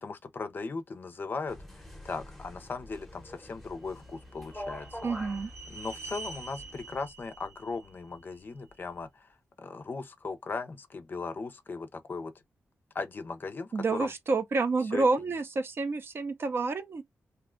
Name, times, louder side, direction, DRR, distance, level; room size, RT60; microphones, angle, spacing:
voice 1, 0.0-5.0 5.7-9.3 9.6-12.3 12.9-14.1 14.9-15.1, left 4 dB, 40° left, 0.5 m, -38 dB
sound 1, 1.5-7.0, left 1 dB, ahead, 0.8 m, -45 dB
sound 2, 3.6-8.8, right 3 dB, 80° right, 1.2 m, -47 dB
voice 2, 5.0-5.5 13.7-17.0, right 3 dB, 50° right, 0.5 m, -29 dB
2.7 x 2.2 x 3.6 m
wide cardioid pair, 140°, 5 cm